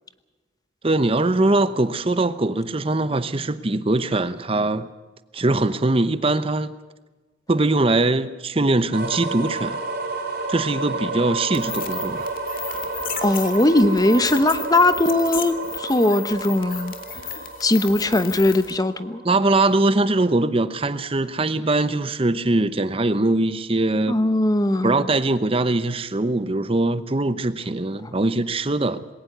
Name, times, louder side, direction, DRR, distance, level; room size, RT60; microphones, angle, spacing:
voice 1, 0.8-4.9 5.3-6.7 7.5-9.8 10.5-12.3 19.2-24.2 24.8-29.0, right 2 dB, 30° right, 0.8 m, -22 dB
sound 1, 8.9-20.7, right 3 dB, 55° right, 4.4 m, -31 dB
sound 2, 11.5-18.8, left 8 dB, 50° left, 2.3 m, -35 dB
voice 2, 13.2-16.9 17.6-19.2 24.1-25.1, left 1 dB, 20° left, 0.9 m, -19 dB
20.5 x 18.5 x 8.0 m
head